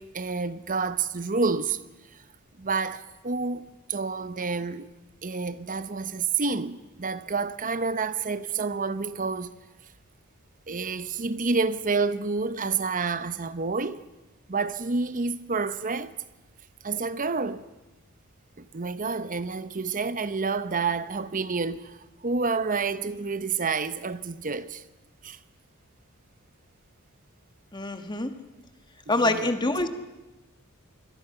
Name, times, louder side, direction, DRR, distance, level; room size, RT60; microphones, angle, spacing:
voice 1, 0.0-1.8 2.1-2.2 2.6-4.9 5.2-9.5 10.7-14.0 14.5-16.2 16.8-17.7 18.6-24.8 25.2-25.4 29.1-29.6, right 4 dB, 40° right, 0.8 m, -29 dB
voice 2, 27.7-28.3 29.1-29.9, left 2 dB, 20° left, 1.4 m, -25 dB
26.0 x 21.5 x 5.9 m
head